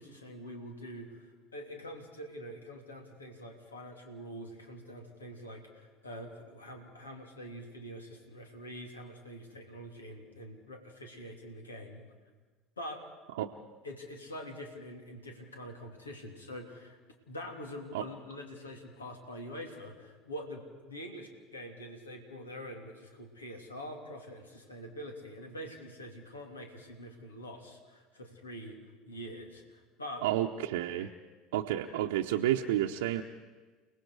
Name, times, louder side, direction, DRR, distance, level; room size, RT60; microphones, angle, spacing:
voice 1, 0.0-12.0 12.8-13.1 13.8-17.0 17.3-28.8 29.1-30.3, equal, 90° left, 2 dB, 3.0 m, -45 dB
voice 2, 30.2-31.1 31.5-33.2, right 12 dB, 70° right, 1 dB, 0.8 m, -30 dB
29.5 x 19.0 x 4.9 m, 1.3 s
hypercardioid pair, 75°, 0 cm